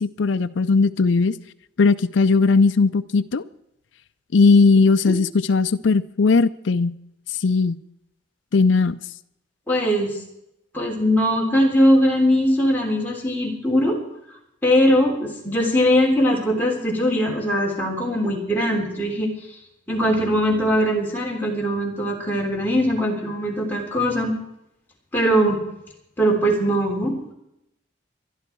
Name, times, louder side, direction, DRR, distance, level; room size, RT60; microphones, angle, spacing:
voice 1, 0.0-1.3 1.8-3.4 4.3-6.9 7.4-7.8 8.5-9.0, left 4 dB, 80° left, 11 dB, 0.5 m, -18 dB
voice 2, 9.7-10.2 10.7-14.0 14.6-19.3 19.9-24.3 25.1-25.6 26.2-27.2, equal, 10° left, -2 dB, 3.3 m, -20 dB
23.5 x 11.0 x 4.6 m, 0.82 s
head